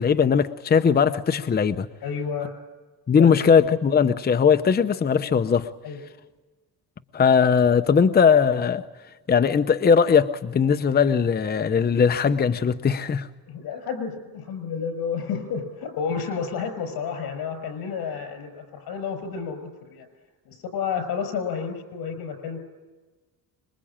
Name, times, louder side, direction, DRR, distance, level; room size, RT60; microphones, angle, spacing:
voice 1, 0.0-1.9 3.1-5.7 7.1-8.8 9.3-13.3, left 6 dB, 25° left, 10 dB, 0.8 m, -19 dB
voice 2, 2.0-2.5 3.2-3.3 5.8-6.0 13.5-20.1 20.5-22.6, left 6 dB, 80° left, 9 dB, 6.0 m, -31 dB
25.5 x 22.5 x 8.8 m, 1.3 s
cardioid pair, 130°, 36 cm